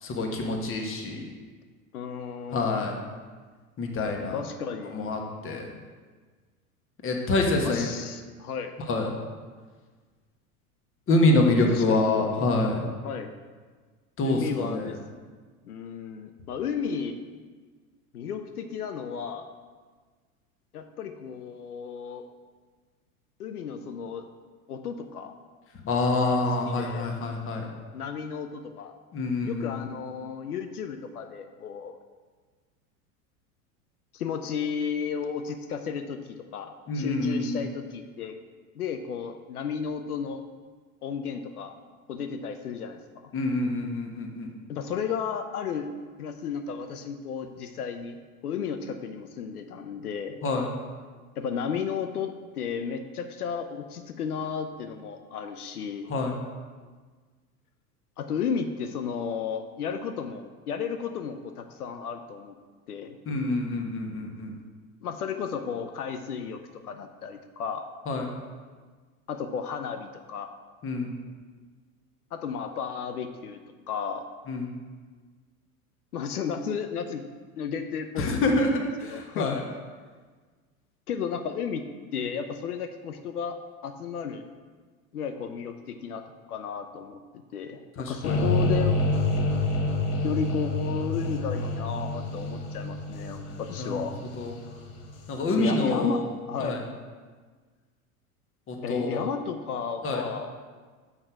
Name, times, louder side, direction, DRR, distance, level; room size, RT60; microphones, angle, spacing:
voice 1, 0.0-1.2 2.5-3.0 3.8-4.4 4.9-5.6 7.0-7.9 8.9-9.1 11.1-12.9 14.2-14.9 25.8-27.6 29.1-29.8 36.9-37.6 43.3-44.5 50.4-50.7 56.1-56.3 63.3-64.5 68.1-68.2 70.8-71.1 74.5-74.7 78.2-78.7 79.0-79.6 88.0-88.4 93.8-93.9 94.4-94.5 95.3-96.2 96.6-96.8 98.7-99.3 100.0-100.2, left 2 dB, 30° left, 2 dB, 1.3 m, -26 dB
voice 2, 1.9-2.9 4.3-5.0 7.6-8.7 11.7-12.6 13.0-13.3 14.2-15.0 15.7-17.2 18.1-19.5 20.7-22.2 23.4-24.3 24.7-25.3 26.6-27.1 27.9-28.9 29.4-32.0 34.1-38.3 38.8-40.4 41.0-41.7 42.1-43.3 44.7-45.9 46.2-48.2 48.4-50.4 51.4-56.1 58.2-62.6 62.9-63.2 65.0-67.9 69.3-70.5 72.3-73.6 73.9-74.3 76.1-77.2 77.6-78.3 78.7-79.6 81.1-81.8 82.1-84.4 85.1-89.0 90.2-94.1 95.6-96.8 98.8-100.5, left 6 dB, 90° left, 7 dB, 0.6 m, -33 dB
sound 1, 88.2-95.4, left 2 dB, 65° left, 1.4 m, -28 dB
6.7 x 5.6 x 4.5 m, 1.5 s
hypercardioid pair, 90°, 44 cm